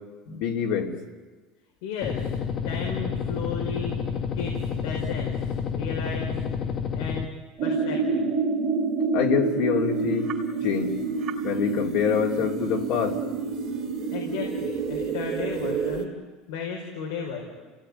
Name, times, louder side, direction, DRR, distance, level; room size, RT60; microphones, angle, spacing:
voice 1, 0.3-0.9 9.1-10.3 10.6-10.9 11.4-13.2, left 7 dB, 60° left, 0 dB, 2.9 m, -25 dB
voice 2, 1.8-2.4 2.6-6.4 6.9-7.3 7.6-8.3 14.1-16.1 16.5-17.4, left 5 dB, 85° left, 1 dB, 4.6 m, -35 dB
sound 1, 2.0-7.3, left 6 dB, 35° left, 1.1 m, -29 dB
sound 2, 7.6-16.0, right 4 dB, 35° right, 2.5 m, -28 dB
29.5 x 17.5 x 9.8 m, 1.3 s
cardioid pair, 165°, 0 cm